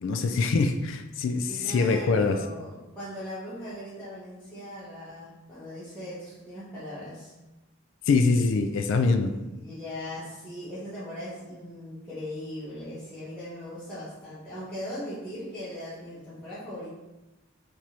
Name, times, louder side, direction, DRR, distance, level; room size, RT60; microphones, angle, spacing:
voice 1, 0.0-2.4 8.1-9.3, left 4 dB, 65° left, 8 dB, 0.3 m, -24 dB
voice 2, 1.5-7.3 9.3-16.9, left 1 dB, 5° left, -13 dB, 0.9 m, -39 dB
4.6 x 2.6 x 2.9 m, 1.0 s
head